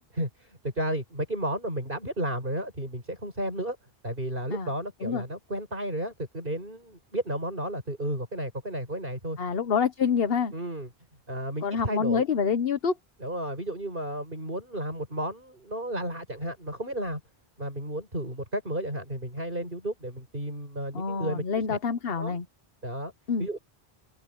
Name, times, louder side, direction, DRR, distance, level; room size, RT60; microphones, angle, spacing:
voice 1, 0.2-3.8 4.0-9.4 10.5-10.9 11.3-12.2 13.2-17.2 17.6-21.4 21.7-21.8 22.1-22.4 22.8-23.1 23.4-23.6, right 1 dB, 60° right, 7.5 m, -33 dB
voice 2, 9.4-10.5 11.6-13.0 20.9-22.4 23.3-23.5, left 6 dB, 70° left, 1.3 m, -27 dB
omnidirectional pair, 1.0 m